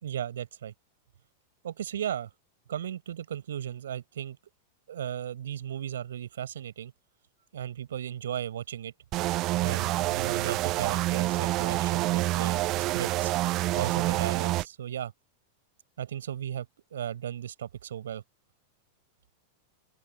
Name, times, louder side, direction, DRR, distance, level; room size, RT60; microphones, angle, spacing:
voice 1, 0.0-0.7 1.6-2.3 2.7-4.4 4.9-6.9 7.5-8.9 9.6-12.6 12.9-13.3 13.7-15.1 16.0-16.7 16.9-18.2, right 10 dB, 65° right, 5.8 m, -35 dB
sound 1, 9.1-14.6, right 17 dB, 35° right, 0.5 m, -27 dB
open air
figure-of-eight pair, 90°, 0 cm